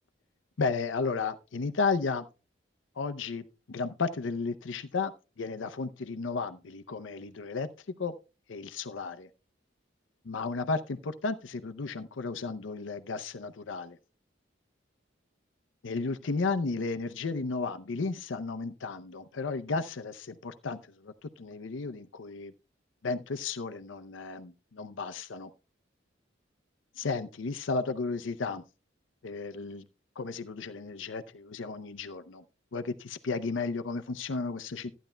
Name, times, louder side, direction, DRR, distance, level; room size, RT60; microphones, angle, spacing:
voice 1, 0.6-2.3 3.0-7.7 8.0-8.1 8.5-9.3 10.2-14.0 15.8-22.5 23.0-25.5 27.0-28.6 29.2-29.9 30.2-32.4 32.7-34.9, left 4 dB, 90° left, 0.6 m, -33 dB
14.5 x 10.0 x 2.2 m
head